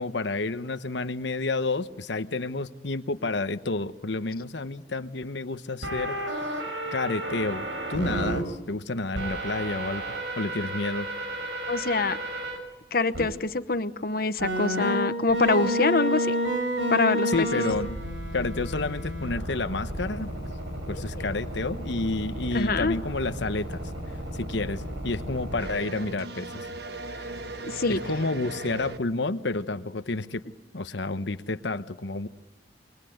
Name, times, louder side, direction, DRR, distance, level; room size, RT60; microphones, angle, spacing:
voice 1, 0.0-6.2 6.9-10.0 10.4-11.1 17.3-18.0 18.3-20.3 20.9-23.8 24.3-26.7 27.2-27.3 27.9-30.4 30.7-32.3, left 3 dB, 70° left, 11 dB, 1.0 m, -30 dB
sound 1, 5.8-8.4 9.1-12.6 13.1-13.2 14.4-25.6, equal, 85° right, 5.9 m, -31 dB
voice 2, 11.7-12.2 12.9-16.4 16.9-17.5 21.2-21.3 22.5-23.0 27.7-28.0, left 3 dB, 50° left, 12 dB, 1.1 m, -25 dB
sound 2, 25.6-29.0, right 2 dB, 60° right, 1.3 m, -37 dB
29.0 x 23.0 x 8.0 m, 0.98 s
head